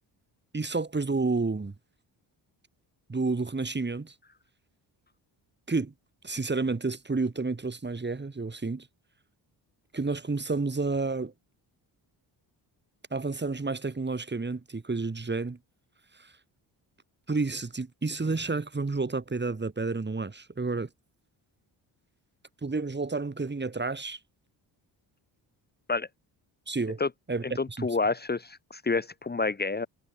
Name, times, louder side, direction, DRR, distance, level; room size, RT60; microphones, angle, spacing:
voice 1, 0.5-1.7 3.1-4.1 5.7-5.9 6.2-8.9 9.9-11.3 13.1-15.6 17.3-20.9 22.6-24.2 26.7-27.0 27.3-27.4 27.8-27.9, right 3 dB, 20° right, 2.6 m, -30 dB
voice 2, 27.4-29.9, left 3 dB, 20° left, 0.8 m, -29 dB
supercardioid pair, 65°, 47 cm